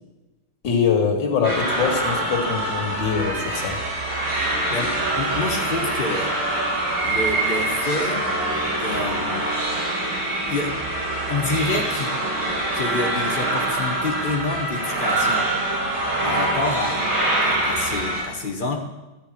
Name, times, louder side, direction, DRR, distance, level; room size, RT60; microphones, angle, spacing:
voice 1, 0.6-3.8, left 6 dB, 60° left, 2 dB, 2.3 m, -23 dB
sound 1, 1.4-18.2, right 2 dB, 80° right, 5.7 m, -24 dB
voice 2, 4.7-6.4 7.0-8.3 8.7-9.5 10.5-10.8 11.3-12.2 12.7-15.5 16.2-18.8, left 3 dB, 25° left, 3 dB, 1.3 m, -28 dB
14.0 x 5.1 x 8.8 m, 1.1 s
omnidirectional pair, 2.3 m